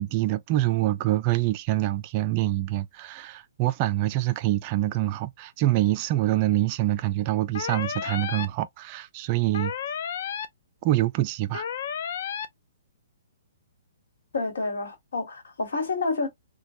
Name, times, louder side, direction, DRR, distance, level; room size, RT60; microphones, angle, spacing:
voice 1, 0.0-9.7 10.8-11.6, right 15 dB, 35° right, 0.3 m, -25 dB
sound 1, 7.5-8.4 9.5-10.4 11.5-12.4, left 8 dB, 55° left, 0.4 m, -32 dB
voice 2, 14.3-16.3, left 3 dB, 70° left, 1.3 m, -29 dB
3.0 x 2.2 x 2.7 m
figure-of-eight pair, 125°, 0 cm